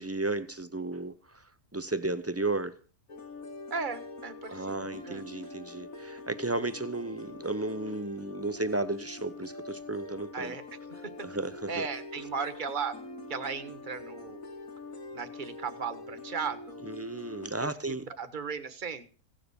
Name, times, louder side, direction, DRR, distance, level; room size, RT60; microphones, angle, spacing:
voice 1, 0.0-1.4 1.7-2.8 4.5-10.5 11.2-11.9 16.9-18.1, right 2 dB, 15° right, 0.5 m, -34 dB
sound 1, 3.1-17.5, left 3 dB, 65° left, 2.7 m, -44 dB
voice 2, 3.7-5.2 10.3-10.6 11.0-11.3 11.7-13.0 13.3-14.4 15.1-16.8 17.6-19.0, right 5 dB, 35° right, 1.5 m, -36 dB
16.5 x 7.7 x 6.9 m
omnidirectional pair, 1.5 m